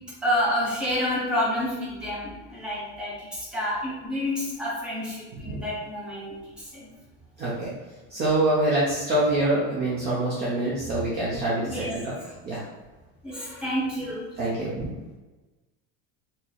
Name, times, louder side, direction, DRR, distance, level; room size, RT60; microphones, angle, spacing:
voice 1, 0.2-6.9 11.7-12.3 13.2-14.3, left 1 dB, ahead, -8 dB, 0.8 m, -29 dB
voice 2, 7.4-7.7 8.1-12.1 12.4-12.6 14.4-14.9, right 1 dB, 30° right, -6 dB, 0.5 m, -25 dB
2.9 x 2.7 x 3.9 m, 1.2 s
cardioid pair, 165°, 36 cm